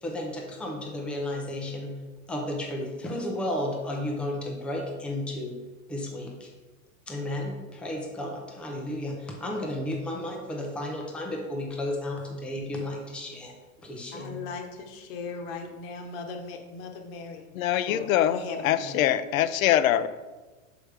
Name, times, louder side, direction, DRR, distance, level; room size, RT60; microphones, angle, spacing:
voice 1, 0.0-2.0 2.3-5.6 5.9-6.5 7.1-13.5 13.8-14.5, left 1 dB, 5° left, 0 dB, 0.3 m, -33 dB
voice 2, 14.1-17.5 17.9-19.1, left 4 dB, 45° left, 4 dB, 1.0 m, -38 dB
voice 3, 17.5-20.1, left 11 dB, 75° left, 14 dB, 0.5 m, -24 dB
6.2 x 4.9 x 3.3 m, 1.3 s
hypercardioid pair, 130°, 41 cm